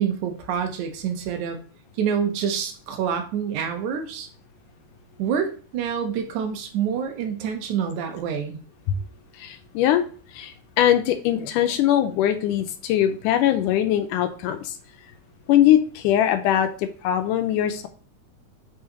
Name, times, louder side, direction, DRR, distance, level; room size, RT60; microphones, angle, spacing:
voice 1, 0.0-1.6 2.0-4.3 5.2-8.6, right 7 dB, 70° right, 5 dB, 2.2 m, -27 dB
voice 2, 9.4-10.0 10.3-14.7 15.5-17.9, left 11 dB, 80° left, 7 dB, 2.1 m, -21 dB
6.3 x 5.7 x 2.9 m, 0.41 s
omnidirectional pair, 3.9 m